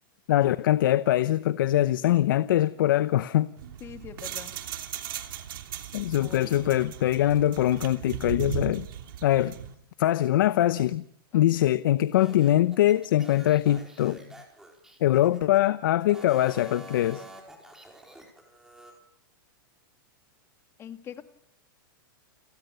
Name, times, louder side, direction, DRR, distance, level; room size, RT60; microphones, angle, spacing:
voice 1, 0.3-3.5 5.9-8.9 9.2-9.6 10.0-11.0 11.3-14.2 15.0-17.2, left 13 dB, 70° left, 0.9 m, -23 dB
sound 1, 3.6-9.7, right 10 dB, 70° right, 3.0 m, -37 dB
voice 2, 3.8-4.5 6.0-6.9 11.3-11.6 20.8-21.2, left 8 dB, 20° left, 2.0 m, -44 dB
sound 2, 12.1-15.6 16.0-18.9, right 1 dB, 5° right, 4.7 m, -48 dB
30.0 x 19.0 x 6.8 m
supercardioid pair, 145°, 12 cm